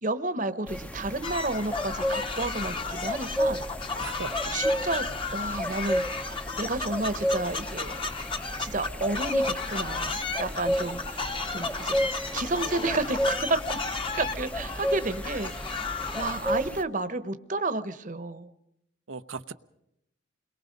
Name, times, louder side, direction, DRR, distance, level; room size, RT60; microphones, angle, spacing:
voice 1, 0.0-3.6 4.5-5.1 5.3-7.9 8.6-12.1 12.3-18.5, right 2 dB, 40° right, 12 dB, 1.1 m, -31 dB
sound 1, 0.7-16.8, equal, 5° left, 0.7 m, -32 dB
sound 2, 1.2-16.5, left 4 dB, 25° left, 1.1 m, -34 dB
voice 2, 4.0-4.6 11.5-12.3 19.1-19.5, right 5 dB, 80° right, 8 dB, 0.8 m, -40 dB
29.0 x 22.0 x 5.3 m, 0.80 s
head